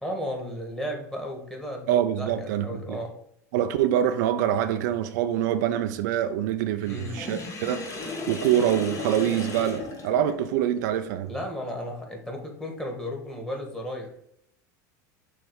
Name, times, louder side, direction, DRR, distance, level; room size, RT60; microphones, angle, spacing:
voice 1, 0.0-3.1 6.8-7.2 11.3-14.1, equal, 5° left, 1.9 m, -34 dB
voice 2, 1.9-3.0 3.5-11.3, right 10 dB, 75° right, 0.5 m, -25 dB
Sink (filling or washing), 6.8-10.8, left 3 dB, 35° left, 1.5 m, -36 dB
6.2 x 3.4 x 4.9 m
supercardioid pair, 105°, 10 cm